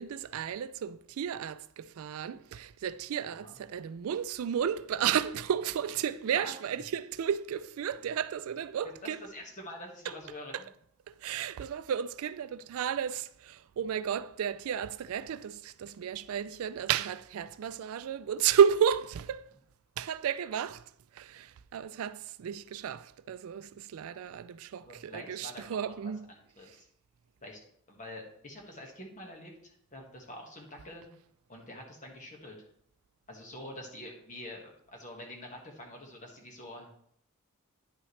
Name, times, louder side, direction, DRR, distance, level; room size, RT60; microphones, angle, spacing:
voice 1, 0.0-9.3 10.0-10.2 10.5-10.8 11.1-19.5 20.0-26.3 26.7-26.8, right 8 dB, 75° right, 0.3 m, -32 dB
voice 2, 9.0-10.7 24.8-26.9 27.4-27.6 27.9-31.1 31.5-32.5 33.3-36.9, left 1 dB, 35° left, 1.6 m, -46 dB
9.8 x 5.6 x 3.2 m
head